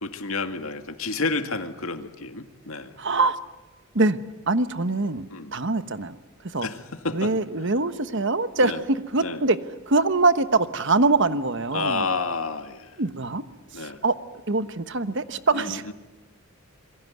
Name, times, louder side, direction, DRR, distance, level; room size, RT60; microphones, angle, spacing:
voice 1, 0.0-2.9 5.3-5.5 6.6-7.3 8.6-8.8 9.2-9.4 11.7-13.0 13.7-14.0 15.5-15.9, left 3 dB, 70° left, 7 dB, 2.1 m, -30 dB
voice 2, 3.0-3.4 3.9-4.2 4.5-5.2 5.5-6.2 6.4-6.7 7.1-9.6 9.9-12.1 13.0-13.4 13.7-14.2 14.5-15.9, right 3 dB, 55° right, 12 dB, 1.2 m, -23 dB
27.0 x 23.0 x 9.4 m, 1.0 s
head